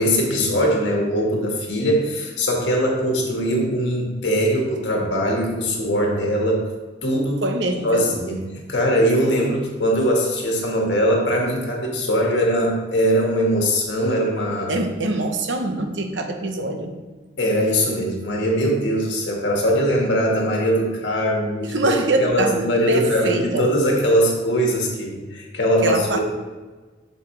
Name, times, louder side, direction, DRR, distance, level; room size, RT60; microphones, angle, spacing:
voice 1, 0.0-6.6 7.0-7.4 7.8-14.7 17.4-21.9 22.2-26.2, equal, 75° left, -1 dB, 1.8 m, -21 dB
voice 2, 7.4-8.1 9.4-9.5 14.7-16.9 21.7-22.6 22.9-23.7 25.8-26.2, right 2 dB, 80° right, 5 dB, 1.0 m, -23 dB
8.1 x 6.5 x 3.3 m, 1.3 s
head